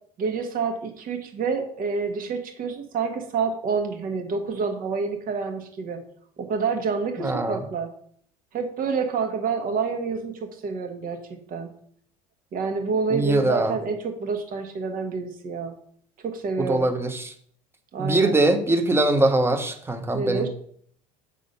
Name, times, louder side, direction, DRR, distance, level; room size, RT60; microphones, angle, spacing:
voice 1, 0.2-6.0 6.4-7.9 8.5-11.7 12.5-15.7 16.2-16.9 17.9-18.4 20.1-20.5, right 5 dB, 50° right, 5 dB, 1.5 m, -28 dB
voice 2, 7.2-7.6 13.1-13.8 16.6-17.3 18.0-20.5, right 2 dB, 15° right, 6 dB, 1.1 m, -22 dB
6.8 x 3.7 x 5.5 m, 0.62 s
hypercardioid pair, 75°, 19 cm